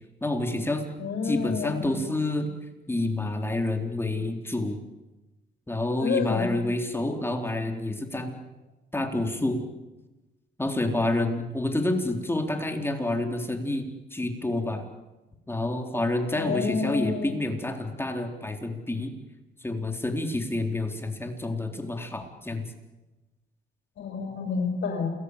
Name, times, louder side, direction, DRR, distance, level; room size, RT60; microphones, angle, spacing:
voice 1, 0.2-0.9 1.2-2.5 2.9-4.8 5.7-8.4 8.9-9.6 10.6-14.8 15.5-19.1 19.6-22.7, left 2 dB, 10° left, 4 dB, 4.1 m, -28 dB
voice 2, 1.0-2.0 6.0-6.5 16.3-17.3 24.0-25.1, left 5 dB, 70° left, 2 dB, 6.3 m, -29 dB
29.0 x 20.5 x 8.4 m, 1.1 s
cardioid pair, 90°, 20 cm